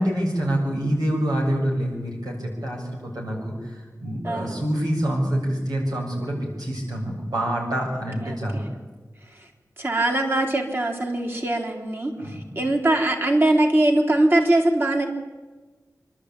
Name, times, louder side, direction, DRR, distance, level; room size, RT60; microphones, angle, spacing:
voice 1, 0.0-8.6 12.2-12.6, equal, 85° right, -2 dB, 7.0 m, -26 dB
voice 2, 4.2-4.6 8.2-8.6 9.3-9.5 9.8-15.1, right 1 dB, 35° right, 2 dB, 3.7 m, -22 dB
27.0 x 12.0 x 8.9 m, 1.3 s
wide cardioid pair, 50°, 6 cm